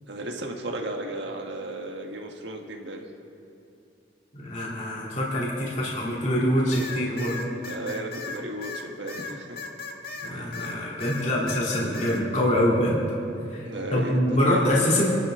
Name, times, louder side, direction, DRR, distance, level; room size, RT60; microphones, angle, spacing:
voice 1, 0.1-3.0 7.6-9.6 13.6-14.7, right 1 dB, 75° right, 2 dB, 1.6 m, -34 dB
voice 2, 4.3-7.5 10.2-13.0 13.5-15.2, equal, 40° left, -5 dB, 3.0 m, -25 dB
sound 1, 6.7-10.8 11.0-12.2, left 4 dB, 55° left, 1.5 m, -36 dB
27.5 x 12.0 x 3.8 m, 2.6 s
head